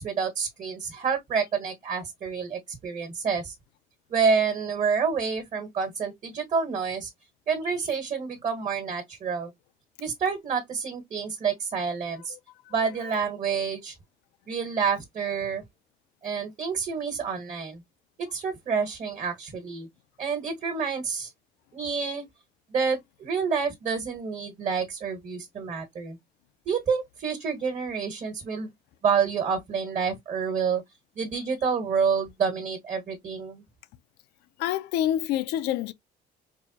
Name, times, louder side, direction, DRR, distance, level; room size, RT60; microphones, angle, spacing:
voice 1, 0.0-3.5 4.1-7.1 7.5-9.5 10.0-12.3 12.7-13.9 14.5-15.6 16.2-17.8 18.2-19.9 20.2-21.3 21.7-22.2 22.7-26.2 26.6-28.7 29.0-30.8 31.2-33.6, right 6 dB, 40° right, 1.5 m, -28 dB
voice 2, 12.7-13.3 34.6-35.9, left 12 dB, 85° left, 0.5 m, -28 dB
4.7 x 2.3 x 2.8 m
cardioid pair, 110°, 17 cm